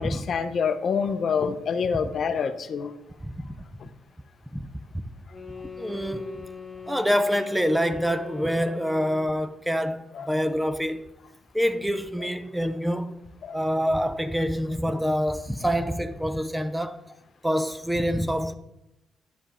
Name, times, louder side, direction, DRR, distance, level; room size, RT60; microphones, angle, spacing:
voice 1, 0.0-2.9 3.8-3.9 10.1-10.3 13.4-13.6, left 6 dB, 55° left, 0.6 m, -27 dB
voice 2, 3.2-3.5 4.5-4.7 5.8-6.3 6.9-11.1 11.5-17.0 17.4-18.5, equal, 5° right, 0.6 m, -26 dB
sound 1, 5.3-9.5, left 6 dB, 25° left, 1.9 m, -41 dB
10.5 x 5.2 x 4.3 m
cardioid pair, 90°, 0 cm